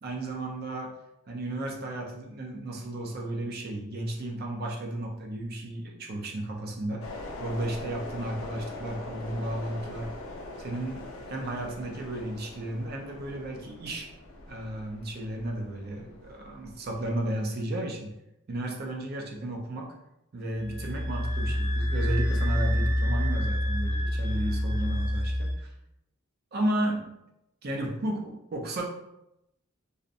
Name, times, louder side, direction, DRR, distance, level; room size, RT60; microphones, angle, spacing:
voice 1, 0.0-0.9 1.3-10.1 10.6-14.1 14.5-18.1 18.5-19.9 20.3-25.7 26.5-27.1 27.6-28.8, right 1 dB, 50° right, 1 dB, 0.5 m, -33 dB
sound 1, 7.0-17.2, left 2 dB, 90° left, 0.4 m, -42 dB
sound 2, 20.6-25.5, equal, 10° left, 0.4 m, -27 dB
2.7 x 2.0 x 2.5 m, 0.85 s
head